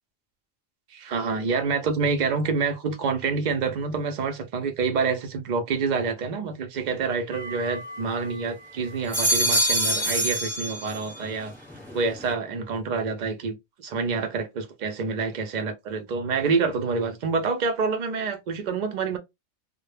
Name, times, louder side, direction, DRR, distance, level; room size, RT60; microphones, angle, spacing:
voice 1, 0.9-11.5 11.9-19.2, right 4 dB, 80° right, 0.4 m, -27 dB
sound 1, 7.3-8.5 8.9-11.3 11.7-12.3, equal, ahead, 0.7 m, -27 dB
2.1 x 2.1 x 3.1 m
omnidirectional pair, 1.3 m